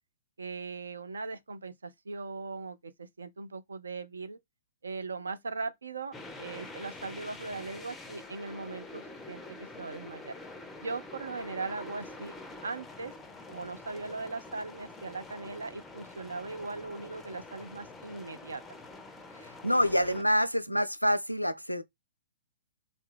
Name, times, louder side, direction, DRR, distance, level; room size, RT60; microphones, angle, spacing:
voice 1, 0.4-4.4 4.8-10.3 10.8-12.4 12.6-13.1 13.5-18.6, right 3 dB, 70° right, 0.4 m, -39 dB
sound 1, 6.1-20.2, left 2 dB, 10° left, 0.5 m, -46 dB
voice 2, 19.4-21.8, equal, 90° left, 0.3 m, -27 dB
2.6 x 2.2 x 3.3 m
figure-of-eight pair, 115°, 0 cm